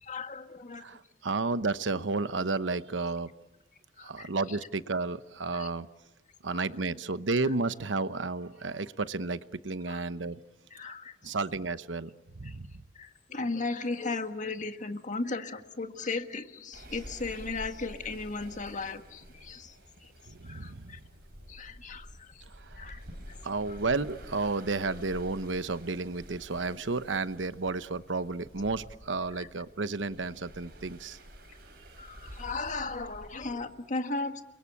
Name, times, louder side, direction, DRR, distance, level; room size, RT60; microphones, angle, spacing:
voice 1, 0.0-1.0 4.0-4.6 5.5-5.7 6.5-6.7 9.9-10.0 10.7-11.3 12.4-12.6 13.0-19.8 20.0-20.1 20.4-21.0 21.5-22.5 22.8-23.0 23.7-23.8 29.4-29.5 32.0-34.4, left 3 dB, 45° left, 7 dB, 1.7 m, -36 dB
voice 2, 0.8-3.3 4.0-5.9 6.4-10.4 10.8-10.9 11.2-12.1 12.4-12.8 20.3-21.0 22.6-22.8 23.4-31.2, right 3 dB, 80° right, 13 dB, 1.0 m, -32 dB
sound 1, 16.7-33.5, equal, 55° right, 7.4 m, -49 dB
30.0 x 23.0 x 8.5 m, 0.97 s
head